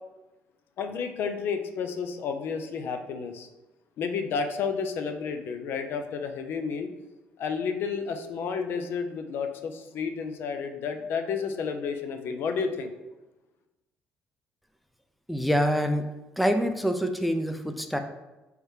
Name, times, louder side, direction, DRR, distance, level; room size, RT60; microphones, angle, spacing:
voice 1, 0.8-3.5 4.0-6.9 7.4-12.9, left 5 dB, 65° left, 6 dB, 0.5 m, -31 dB
voice 2, 15.3-16.1 16.4-18.0, equal, ahead, 6 dB, 0.3 m, -25 dB
4.8 x 3.3 x 3.1 m, 1.1 s
cardioid pair, 110°, 4 cm